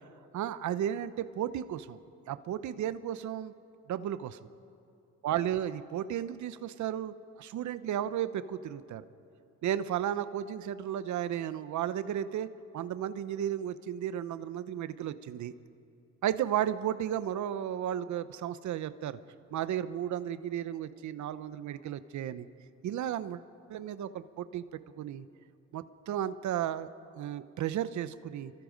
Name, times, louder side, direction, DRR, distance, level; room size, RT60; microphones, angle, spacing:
voice 1, 0.3-2.0 2.3-3.5 3.9-4.4 5.2-9.0 9.6-15.5 16.2-19.2 19.5-22.5 22.8-23.4 23.7-24.7 25.0-25.3 25.7-28.5, right 10 dB, 70° right, 14 dB, 0.8 m, -34 dB
26.5 x 23.5 x 5.2 m, 2.6 s
cardioid pair, 90°, 30 cm